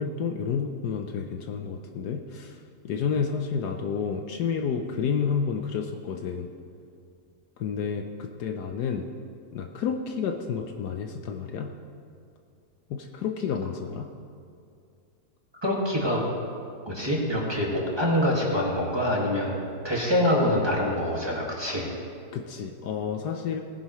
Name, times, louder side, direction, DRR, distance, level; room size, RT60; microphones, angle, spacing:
voice 1, 0.0-2.6 2.8-6.5 7.6-9.1 9.5-11.7 12.9-14.1 22.3-23.6, left 6 dB, 70° left, 3 dB, 1.2 m, -30 dB
voice 2, 15.6-16.2 16.9-21.9, left 1 dB, 15° right, -4 dB, 1.8 m, -25 dB
19.0 x 10.5 x 3.1 m, 2.4 s
omnidirectional pair, 1.9 m